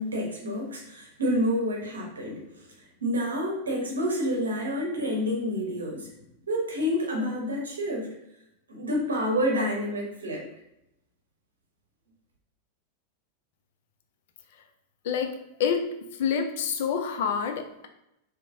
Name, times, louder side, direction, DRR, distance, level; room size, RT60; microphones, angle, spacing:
voice 1, 0.0-2.6 3.0-6.1 6.5-8.1 8.7-10.4, equal, 70° right, -1 dB, 0.7 m, -28 dB
voice 2, 16.2-17.9, left 7 dB, 55° left, 5 dB, 0.3 m, -27 dB
3.0 x 2.0 x 2.6 m, 0.83 s
figure-of-eight pair, 90°, 0 cm